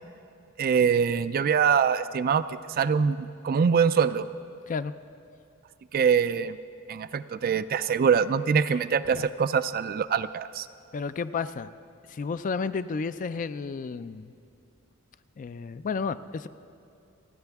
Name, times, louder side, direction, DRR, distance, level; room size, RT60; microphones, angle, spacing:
voice 1, 0.6-2.4 2.8-4.3 5.9-6.6 6.9-10.7, right 6 dB, 40° right, 13 dB, 0.3 m, -24 dB
voice 2, 10.9-11.7 12.1-14.3 15.4-16.5, left 5 dB, 35° left, 13 dB, 0.3 m, -32 dB
29.0 x 9.8 x 3.5 m, 2.6 s
head